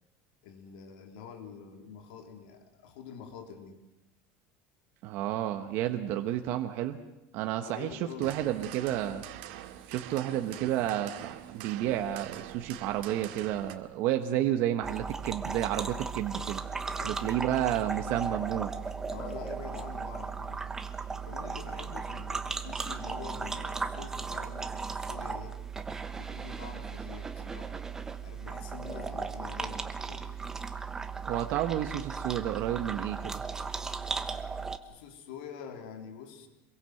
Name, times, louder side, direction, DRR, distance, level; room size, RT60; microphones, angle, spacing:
voice 1, 0.4-3.8 7.6-8.3 16.9-17.4 19.1-20.6 21.1-25.6 26.1-27.8 28.2-30.4 34.8-36.5, left 7 dB, 90° left, 5 dB, 3.7 m, -46 dB
voice 2, 5.0-7.0 7.3-9.2 9.9-16.6 17.0-18.7 31.2-33.4, right 12 dB, 50° right, 6 dB, 1.3 m, -31 dB
sound 1, 8.2-13.7, right 13 dB, 85° right, 2.1 m, -44 dB
sound 2, 14.8-34.8, right 5 dB, 10° right, 1.1 m, -36 dB
26.5 x 22.5 x 7.9 m, 0.96 s
cardioid pair, 170°, 5 cm